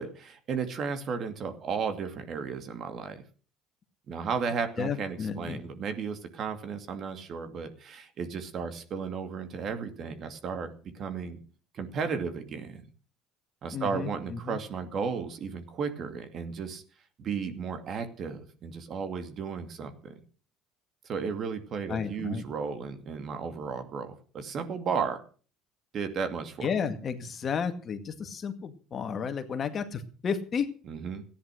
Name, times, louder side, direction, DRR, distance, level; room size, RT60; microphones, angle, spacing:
voice 1, 0.0-3.2 4.1-11.4 11.7-12.8 13.6-16.8 17.2-20.1 21.1-25.2 25.9-26.7 30.9-31.2, right 6 dB, 45° right, 8 dB, 2.4 m, -34 dB
voice 2, 4.8-5.6 13.7-14.6 21.9-22.4 26.6-30.7, left 6 dB, 40° left, 8 dB, 2.0 m, -32 dB
14.5 x 10.0 x 6.4 m, 0.40 s
supercardioid pair, 100°, 0 cm